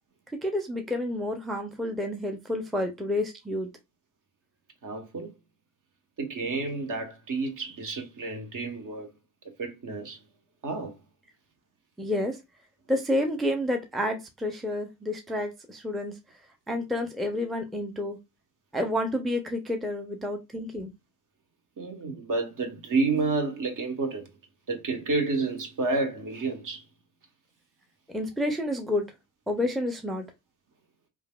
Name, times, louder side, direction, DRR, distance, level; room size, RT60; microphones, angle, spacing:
voice 1, 0.4-3.7 12.0-12.4 12.9-16.1 16.7-18.2 18.7-20.9 28.1-29.1 29.5-30.3, left 1 dB, ahead, 0.5 m, -29 dB
voice 2, 4.8-5.3 6.2-9.1 9.6-10.2 10.6-10.9 21.8-24.3 24.7-26.8, right 3 dB, 45° right, 1.0 m, -30 dB
3.2 x 2.4 x 2.2 m
hypercardioid pair, 45°, 45 cm